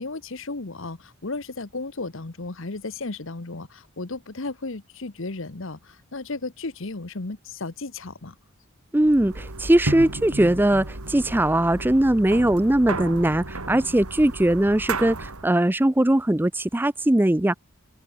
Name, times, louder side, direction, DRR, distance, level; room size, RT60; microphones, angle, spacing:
voice 1, 0.0-8.3, left 3 dB, 60° left, 1.1 m, -34 dB
voice 2, 8.9-17.6, right 1 dB, 10° right, 0.4 m, -20 dB
sound 1, 9.0-15.5, right 2 dB, 85° right, 3.2 m, -33 dB
open air
head